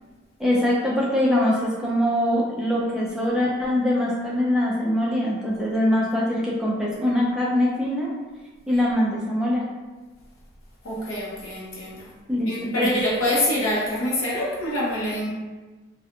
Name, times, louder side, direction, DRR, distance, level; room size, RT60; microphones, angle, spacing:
voice 1, 0.4-8.1 8.7-9.6 12.3-12.9, left 1 dB, 5° right, -5 dB, 0.3 m, -23 dB
voice 2, 10.8-12.1 12.5-15.3, left 1 dB, 85° left, -5 dB, 0.8 m, -25 dB
2.5 x 2.2 x 2.7 m, 1.3 s
head